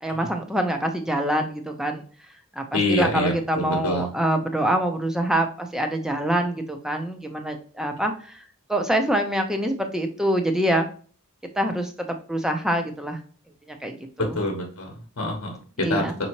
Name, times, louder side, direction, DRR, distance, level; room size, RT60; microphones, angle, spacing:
voice 1, 0.0-2.0 2.6-8.4 8.7-10.8 11.6-11.9 12.3-13.2 13.8-14.4 15.8-16.1, right 1 dB, 5° right, 4 dB, 0.6 m, -25 dB
voice 2, 2.7-4.1 14.2-16.0, left 1 dB, 65° left, 1 dB, 1.0 m, -26 dB
5.4 x 2.8 x 2.9 m, 0.42 s
head